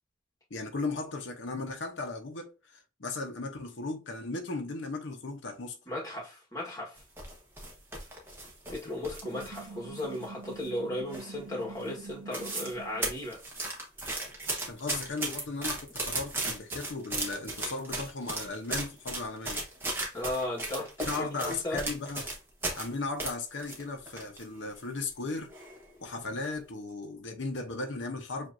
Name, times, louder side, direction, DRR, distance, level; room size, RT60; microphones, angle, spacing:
voice 1, 0.5-5.8 8.8-8.9 14.7-19.6 21.0-22.3 22.8-25.5 26.0-28.5, left 3 dB, 80° left, 0.8 m, -36 dB
voice 2, 5.9-7.0 8.7-13.4 20.1-21.8, left 1 dB, 20° left, 1.4 m, -36 dB
sound 1, 7.0-9.7 10.0-10.8 11.1-11.5 11.8-11.9 12.1-12.7 13.0-22.9 23.2-24.4 24.8-24.9 25.5-25.8 26.2-26.4, right 2 dB, 10° right, 1.1 m, -36 dB
sound 2, 9.2-13.1, right 4 dB, 75° right, 0.6 m, -46 dB
7.4 x 2.6 x 2.6 m
head